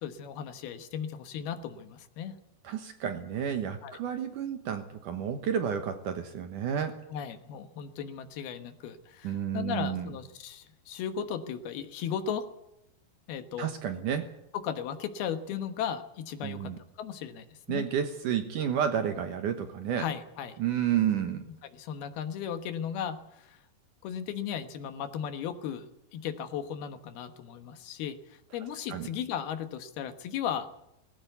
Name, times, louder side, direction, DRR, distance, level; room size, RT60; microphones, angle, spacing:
voice 1, 0.0-2.4 3.8-4.0 7.1-12.5 13.3-13.7 14.6-16.7 17.0-17.8 20.0-20.6 21.4-23.6 24.0-30.7, left 8 dB, 70° left, 9 dB, 3.1 m, -36 dB
voice 2, 2.6-7.0 9.2-10.1 13.6-14.3 16.4-16.8 17.7-20.1 20.6-21.4 28.9-29.1, right 9 dB, 65° right, 8 dB, 2.3 m, -31 dB
19.5 x 16.5 x 8.2 m, 0.82 s
omnidirectional pair, 4.8 m